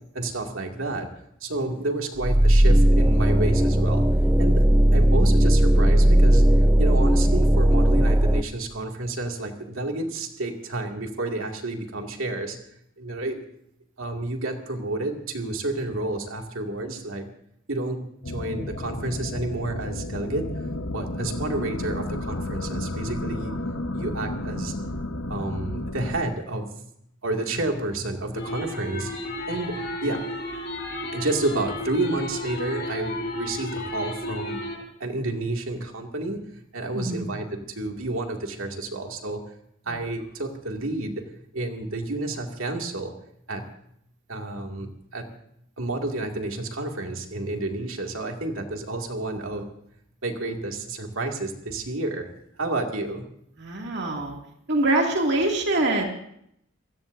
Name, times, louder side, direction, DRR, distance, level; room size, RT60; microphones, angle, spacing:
voice 1, 0.1-1.1 1.4-4.1 4.4-4.6 4.9-12.6 13.0-13.4 14.0-17.2 17.7-23.6 23.9-24.7 25.3-26.8 27.2-30.3 31.1-34.6 35.0-39.4 39.9-41.2 41.5-43.1 43.5-43.7 44.3-45.2 45.8-49.7 50.2-52.3 52.6-53.3, right 2 dB, 80° right, 2 dB, 2.4 m, -30 dB
sound 1, 2.2-8.4, right 1 dB, 10° right, 0.5 m, -17 dB
sound 2, 18.2-26.2, left 1 dB, 80° left, 1.3 m, -32 dB
sound 3, 28.4-34.8, left 1 dB, 50° left, 5.0 m, -33 dB
voice 2, 36.9-37.2 39.9-40.0 53.6-54.4 54.7-56.0, right 2 dB, 55° right, 0 dB, 2.5 m, -24 dB
27.0 x 16.5 x 2.7 m, 0.72 s
head